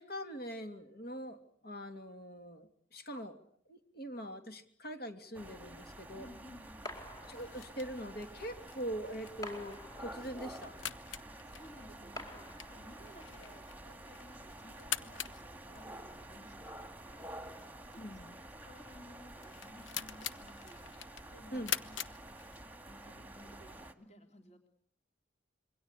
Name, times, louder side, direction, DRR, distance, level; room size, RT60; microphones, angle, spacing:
voice 1, 0.0-3.4 3.7-6.3 7.3-10.7 18.0-18.4 21.5-21.7, equal, 55° left, 6 dB, 2.8 m, -43 dB
sound 1, 5.3-23.9, right 1 dB, 10° right, 1.8 m, -50 dB
voice 2, 6.1-6.9 10.8-11.0 11.4-22.1 22.9-24.7, left 1 dB, 35° left, 4 dB, 3.6 m, -57 dB
sound 2, 6.9-8.0 9.4-10.6 12.2-13.2, left 1 dB, 20° left, 4.5 m, -48 dB
sound 3, 7.3-22.9, left 9 dB, 80° left, 1.1 m, -45 dB
27.0 x 23.0 x 8.3 m, 0.63 s
head